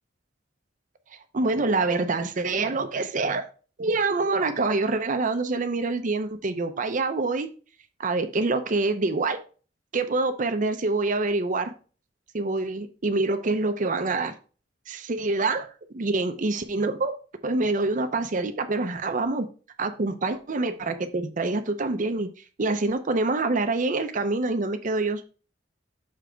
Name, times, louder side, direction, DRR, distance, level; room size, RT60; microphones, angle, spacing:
voice 1, 1.3-3.5 3.8-7.5 8.0-9.4 9.9-11.7 12.3-14.3 14.9-15.7 15.9-17.1 17.4-19.5 19.8-22.3 22.6-25.2, right 3 dB, 45° right, 8 dB, 0.6 m, -26 dB
6.7 x 3.3 x 5.0 m, 0.37 s
head